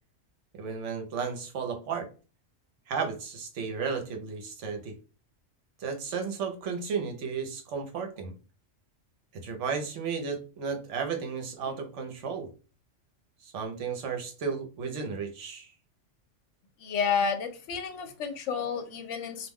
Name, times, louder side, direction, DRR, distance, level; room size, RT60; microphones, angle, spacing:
voice 1, 0.5-2.1 2.9-4.9 5.8-8.3 9.3-12.5 13.4-15.7, right 5 dB, 75° right, 4 dB, 1.0 m, -33 dB
voice 2, 16.8-19.5, left 6 dB, 75° left, 6 dB, 0.9 m, -30 dB
2.4 x 2.1 x 3.4 m, 0.35 s
omnidirectional pair, 1.3 m